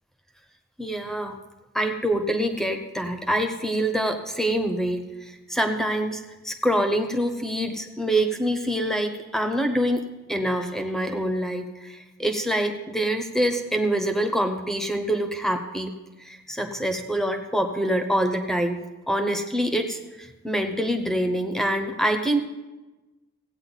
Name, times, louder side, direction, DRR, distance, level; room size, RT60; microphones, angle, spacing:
voice 1, 0.8-1.4 1.7-22.4, right 1 dB, ahead, 6 dB, 0.9 m, -26 dB
16.0 x 8.7 x 4.1 m, 1.1 s
head